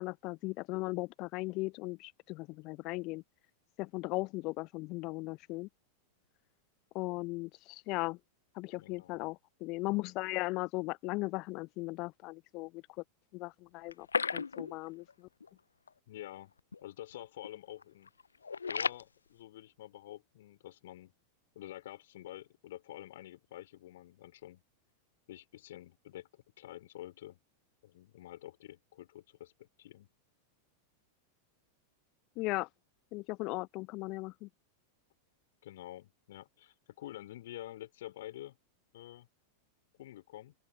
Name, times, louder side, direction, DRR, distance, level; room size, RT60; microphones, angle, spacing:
voice 1, 0.0-3.2 3.8-5.7 6.9-8.2 8.5-12.8 13.3-14.1 14.3-15.3 32.4-32.7 33.1-34.5, left 23 dB, 40° left, 1.0 m, -37 dB
voice 2, 8.8-9.3 16.1-16.5 16.8-18.1 18.7-21.1 21.6-24.6 25.3-27.4 27.8-30.1 35.6-38.6 38.9-39.3 39.9-40.5, left 14 dB, 55° left, 5.1 m, -48 dB
sound 1, 13.8-15.1 15.4-15.5 15.9-16.0 16.6-16.8 17.1-17.5 17.8-19.0, left 5 dB, 75° left, 1.1 m, -35 dB
open air
figure-of-eight pair, 90°, 0 cm